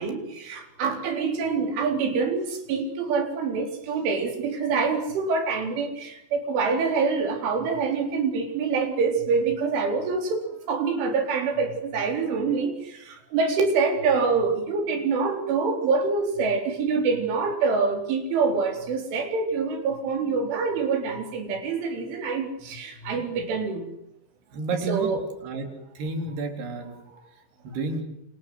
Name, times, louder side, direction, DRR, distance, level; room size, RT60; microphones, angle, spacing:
voice 1, 0.0-23.9 24.9-25.2, right 4 dB, 85° right, 5 dB, 6.5 m, -26 dB
voice 2, 24.5-25.7 26.0-28.0, right 3 dB, 60° right, 5 dB, 5.7 m, -32 dB
27.5 x 27.0 x 7.9 m, 0.81 s
omnidirectional pair, 5.4 m